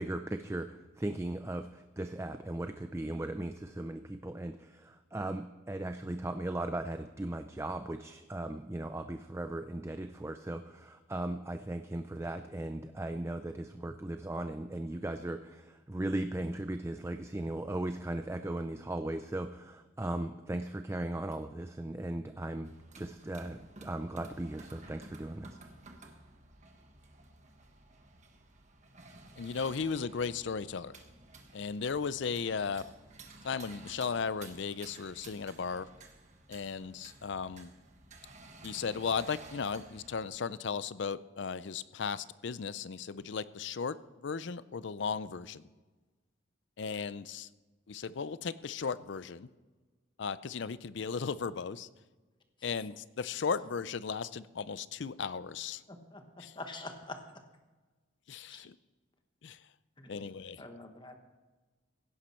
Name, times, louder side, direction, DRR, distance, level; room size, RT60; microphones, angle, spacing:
voice 1, 0.0-25.6, right 1 dB, 15° right, 8 dB, 0.4 m, -37 dB
sound 1, 22.7-40.3, right 3 dB, 35° right, 1.4 m, -54 dB
voice 2, 29.4-31.0 31.5-32.9 33.4-35.9 36.5-37.7 38.6-45.6 46.8-47.5 47.9-49.5 50.2-51.9 52.6-55.8 56.4-56.6 58.3-58.8 59.4-59.6 60.1-60.6, left 5 dB, 60° left, 16 dB, 0.5 m, -36 dB
voice 3, 55.9-56.2 56.6-57.2 58.5-58.6 60.0-60.1 60.6-61.1, left 2 dB, 25° left, 5 dB, 1.2 m, -44 dB
16.5 x 11.5 x 4.4 m, 1.3 s
head